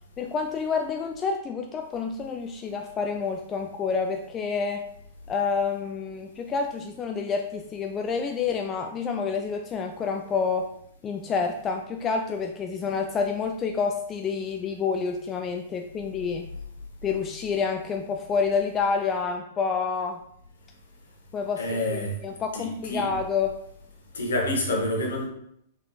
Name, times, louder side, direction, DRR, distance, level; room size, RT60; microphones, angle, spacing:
voice 1, 0.2-4.8 5.3-10.7 11.0-16.5 17.0-20.2 21.3-21.6 21.9-23.6, left 5 dB, 25° left, 0.3 m, -28 dB
voice 2, 21.6-22.2 22.5-23.1 24.1-25.3, left 1 dB, 65° left, 1.0 m, -28 dB
3.8 x 3.6 x 2.7 m
figure-of-eight pair, 105°, 0 cm